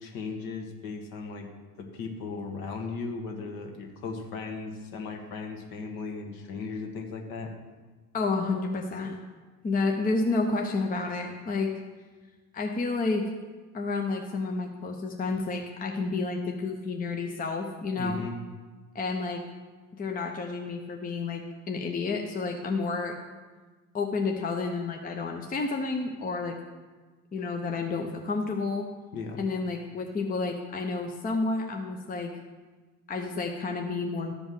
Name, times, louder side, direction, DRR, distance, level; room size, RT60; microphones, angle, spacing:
voice 1, 0.0-1.5 1.8-7.5 18.0-18.3 29.1-29.4, left 4 dB, 50° left, 3 dB, 1.7 m, -37 dB
voice 2, 8.1-9.1 9.6-11.8 12.5-13.3 13.7-18.2 18.9-19.4 20.0-23.1 23.9-26.6 27.3-28.8 29.4-32.3 33.1-34.3, left 3 dB, 20° left, 3 dB, 0.8 m, -30 dB
13.5 x 5.3 x 6.3 m, 1.3 s
figure-of-eight pair, 60°, 46 cm